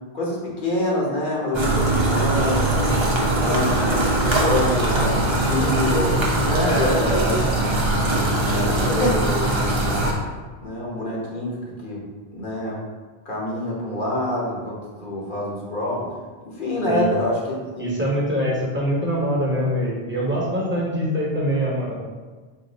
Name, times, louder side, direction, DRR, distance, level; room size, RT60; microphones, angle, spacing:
voice 1, 0.1-3.0 3.4-7.3 8.4-9.6 10.6-12.8 13.2-16.1 16.5-18.0, left 1 dB, 55° left, -4 dB, 1.1 m, -26 dB
sound 1, 1.5-10.1, right 1 dB, 35° right, 0.5 m, -21 dB
voice 2, 6.6-7.4 16.8-17.1 17.8-21.9, equal, 10° right, -5 dB, 0.9 m, -24 dB
4.4 x 2.5 x 3.9 m, 1.4 s
omnidirectional pair, 1.1 m